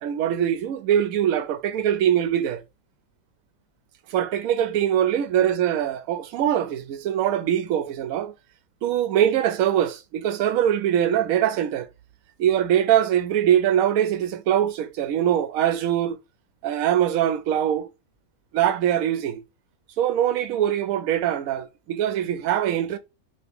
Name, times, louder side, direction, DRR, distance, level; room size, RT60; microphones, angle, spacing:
voice 1, 0.0-2.6 4.1-8.3 8.8-11.9 12.4-16.2 16.6-17.9 18.5-19.4 20.0-23.0, right 10 dB, 80° right, 1.0 m, -22 dB
2.9 x 2.8 x 3.3 m
omnidirectional pair, 1.5 m